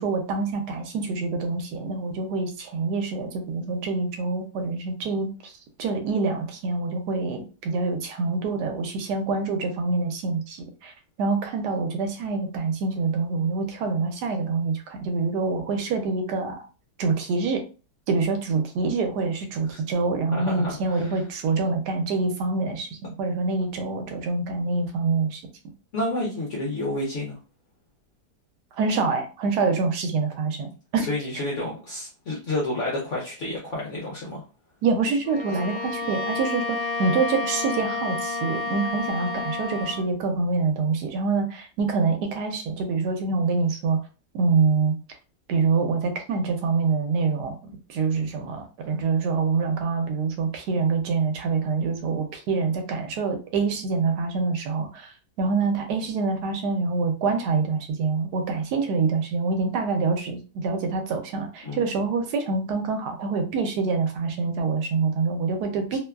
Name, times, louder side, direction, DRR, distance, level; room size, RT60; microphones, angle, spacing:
voice 1, 0.0-5.5 5.8-10.9 11.2-16.7 17.0-17.6 18.1-25.4 28.7-31.1 34.8-44.0 44.3-44.9 45.5-66.0, right 4 dB, 80° right, 5 dB, 1.2 m, -26 dB
voice 2, 20.3-21.2 25.9-27.4 31.1-34.4 61.6-61.8, left 1 dB, 60° left, -4 dB, 0.9 m, -30 dB
Bowed string instrument, 35.2-40.1, left 3 dB, 80° left, 1.1 m, -30 dB
2.9 x 2.2 x 2.3 m, 0.33 s
omnidirectional pair, 1.7 m